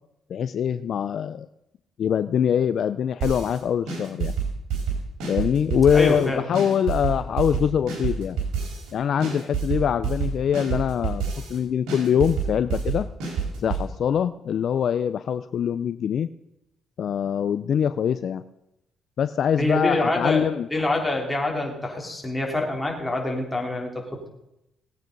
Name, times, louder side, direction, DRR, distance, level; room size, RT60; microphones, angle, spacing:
voice 1, 0.3-1.5 2.0-4.3 5.3-8.4 8.9-11.2 11.5-13.1 13.6-16.3 17.0-18.4 19.2-20.7, left 8 dB, 60° left, 13 dB, 0.5 m, -23 dB
sound 1, 3.2-3.6 3.9-6.2 6.5-8.9 9.2-11.6 11.9-13.9, right 6 dB, 90° right, 4.9 m, -28 dB
voice 2, 5.9-6.4 19.6-24.3, left 2 dB, 10° left, 0 dB, 4.0 m, -26 dB
18.5 x 9.0 x 5.4 m, 0.84 s
cardioid pair, 90°, 0 cm